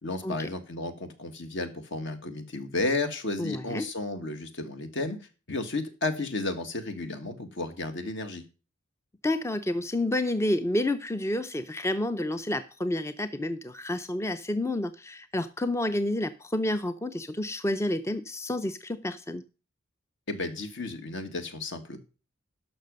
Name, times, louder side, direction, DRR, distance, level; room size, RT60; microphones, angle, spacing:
voice 1, 0.0-8.4 20.3-22.0, left 2 dB, 60° left, 1.7 m, -33 dB
voice 2, 3.4-3.9 9.2-19.4, left 1 dB, 15° left, 0.5 m, -29 dB
12.0 x 5.9 x 5.2 m
head